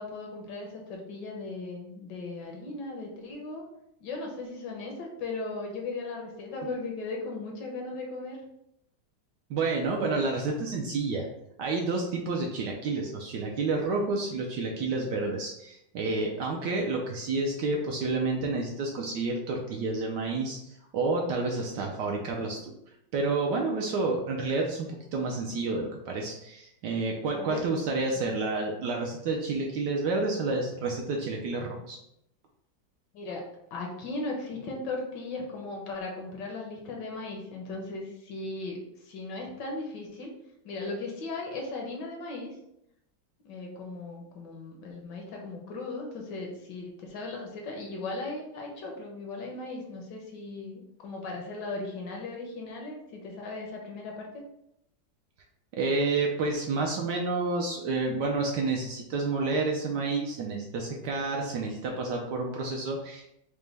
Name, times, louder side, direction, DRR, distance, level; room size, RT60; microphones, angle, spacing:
voice 1, 0.0-3.6 4.0-8.4 27.3-27.7 33.1-33.4 33.7-40.3 40.6-42.5 43.4-54.4, left 3 dB, 70° left, 0 dB, 1.2 m, -37 dB
voice 2, 9.5-11.3 11.6-22.7 23.1-32.0 55.8-63.3, right 3 dB, 75° right, 0 dB, 1.0 m, -29 dB
5.1 x 2.1 x 3.2 m, 0.79 s
omnidirectional pair, 2.2 m